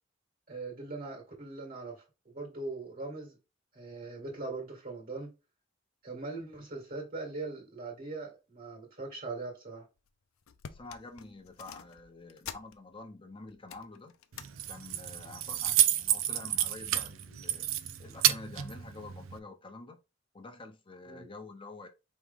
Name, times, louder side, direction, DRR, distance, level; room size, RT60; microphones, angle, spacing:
voice 1, 0.5-3.4 3.7-5.3 6.0-9.9 21.1-21.3, right 3 dB, 45° right, 1.7 m, -41 dB
sound 1, 10.0-10.1 10.4-13.2 13.5-14.5 14.9-15.2 16.0-16.5 16.9-17.0, left 8 dB, 85° left, 0.5 m, -49 dB
voice 2, 10.7-14.1 14.7-17.7 18.0-20.0 20.3-21.9, left 3 dB, 25° left, 0.8 m, -48 dB
Keys jangling, 14.3-19.4, right 12 dB, 70° right, 0.5 m, -30 dB
4.6 x 3.1 x 3.5 m
head